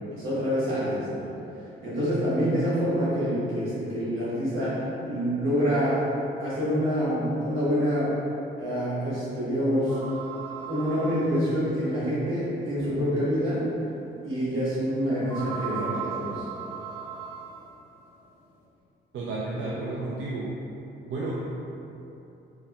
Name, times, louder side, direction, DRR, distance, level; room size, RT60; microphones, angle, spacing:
voice 1, 0.1-1.3 1.8-4.7 5.1-6.1 6.4-8.1 8.6-10.0 10.7-13.6 14.2-16.4, equal, 85° right, -10 dB, 1.4 m, -26 dB
sound 1, 9.9-11.9 12.6-12.7 13.3-13.4 15.3-17.7, right 6 dB, 10° left, 1.3 m, -37 dB
voice 2, 19.1-20.5 21.1-21.4, right 2 dB, 70° right, -5 dB, 0.5 m, -31 dB
4.2 x 2.9 x 2.3 m, 2.9 s
cardioid pair, 90°, 20 cm